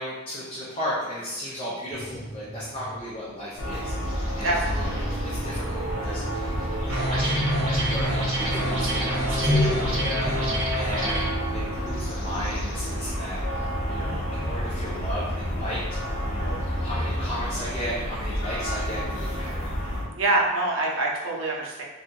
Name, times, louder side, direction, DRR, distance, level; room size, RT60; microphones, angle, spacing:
voice 1, 0.0-6.5 6.8-11.3 11.5-15.8 16.2-19.7, equal, 25° left, -9 dB, 0.7 m, -35 dB
sound 1, 1.9-10.9, left 1 dB, 30° right, 0.7 m, -31 dB
sound 2, 3.6-20.0, equal, 70° left, 0.8 m, -30 dB
voice 2, 4.4-5.1 10.3-10.6 20.2-21.8, right 2 dB, 65° right, -2 dB, 0.7 m, -26 dB
sound 3, 6.9-11.3, right 1 dB, 90° right, 1.0 m, -28 dB
2.9 x 2.6 x 3.6 m, 1.1 s
head